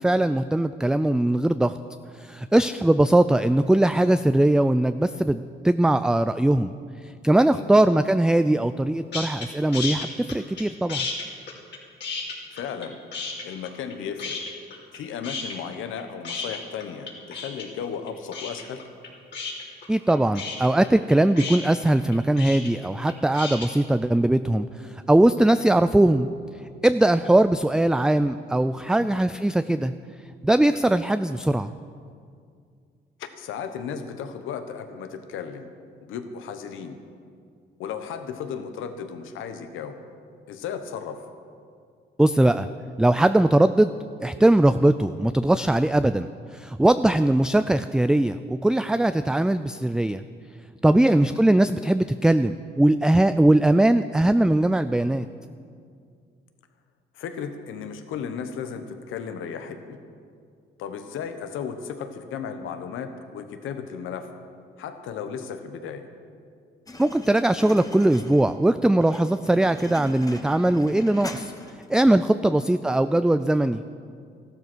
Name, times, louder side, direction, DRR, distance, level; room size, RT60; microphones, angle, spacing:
voice 1, 0.0-1.7 2.2-6.7 7.2-11.1 19.9-26.3 26.8-29.9 30.4-31.7 42.2-42.7 43.0-43.9 44.2-50.2 50.8-55.3 67.0-71.5 71.9-73.8, right 1 dB, 5° right, 11 dB, 0.3 m, -20 dB
sound 1, 9.1-9.5 9.7-10.6 10.9-12.9 13.1-13.9 14.2-15.0 15.2-23.7, left 4 dB, 60° left, 3.1 m, -33 dB
voice 2, 12.5-13.0 13.4-14.4 14.9-18.9 29.0-29.2 33.2-35.7 36.0-36.9 37.8-40.0 40.5-41.3 51.0-51.3 57.1-60.0 60.8-64.3 64.8-66.1 72.4-72.7, left 7 dB, 85° left, 8 dB, 1.2 m, -35 dB
sound 2, 66.9-71.9, left 2 dB, 20° left, 1.3 m, -41 dB
14.0 x 12.0 x 6.2 m, 2.2 s
cardioid pair, 90°, 20 cm